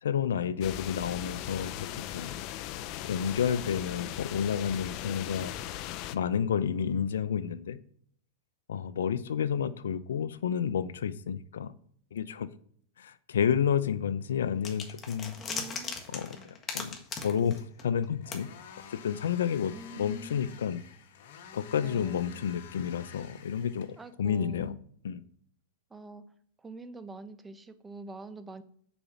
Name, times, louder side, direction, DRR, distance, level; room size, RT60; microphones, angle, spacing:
voice 1, 0.0-2.4 3.0-5.5 6.1-7.8 8.7-11.7 12.1-12.5 13.0-15.4 16.1-18.5 18.9-20.8 21.5-23.9 24.2-24.8 25.0-25.2, left 8 dB, 85° left, 15 dB, 0.7 m, -30 dB
sound 1, 0.6-6.2, left 13 dB, 45° left, 0.6 m, -38 dB
sound 2, 14.2-24.1, left 7 dB, 70° left, 1.3 m, -52 dB
sound 3, 14.6-18.0 18.3-18.4, left 5 dB, 25° left, 1.6 m, -38 dB
voice 2, 15.4-16.0 16.3-16.5 19.7-20.6 21.8-22.4 24.0-24.8 25.9-26.2 26.6-28.6, right 2 dB, 10° right, 10 dB, 0.9 m, -45 dB
7.0 x 5.3 x 7.1 m, 0.63 s
hypercardioid pair, 130°, 0 cm